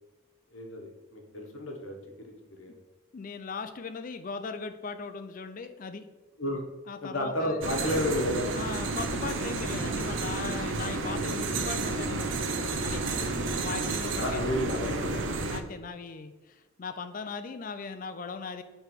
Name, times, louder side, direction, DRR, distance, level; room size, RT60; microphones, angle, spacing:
voice 1, 0.5-2.7 6.4-6.6 7.0-8.7 14.2-15.2, left 1 dB, 80° left, 2 dB, 1.1 m, -32 dB
voice 2, 3.1-6.1 6.9-7.6 8.5-12.3 12.8-13.0 13.5-14.4 15.3-18.6, left 4 dB, 40° left, 9 dB, 0.4 m, -38 dB
sound 1, 7.6-15.6, right 3 dB, 65° right, 0.6 m, -31 dB
6.9 x 3.3 x 4.4 m, 1.2 s
head